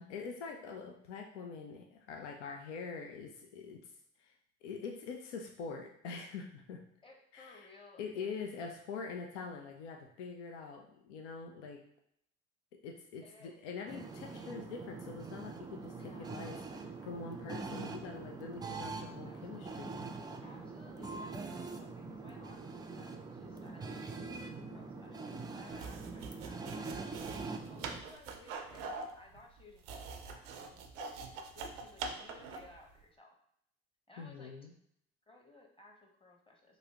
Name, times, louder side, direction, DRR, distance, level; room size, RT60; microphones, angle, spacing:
voice 1, 0.0-3.8 4.2-4.3 4.6-6.8 7.3-7.7 8.0-11.8 12.7-20.0 34.2-34.7, left 5 dB, 85° left, 3 dB, 0.5 m, -44 dB
voice 2, 7.0-8.5 13.2-13.6 16.0-16.3 19.2-19.9 20.4-33.4 34.1-34.5 35.3-36.8, left 2 dB, 15° left, 0 dB, 0.9 m, -59 dB
sound 1, 13.9-28.0, right 4 dB, 15° right, 0.3 m, -43 dB
sound 2, 25.7-32.8, right 4 dB, 85° right, 0.5 m, -44 dB
3.1 x 2.6 x 2.9 m, 0.70 s
hypercardioid pair, 60°, 34 cm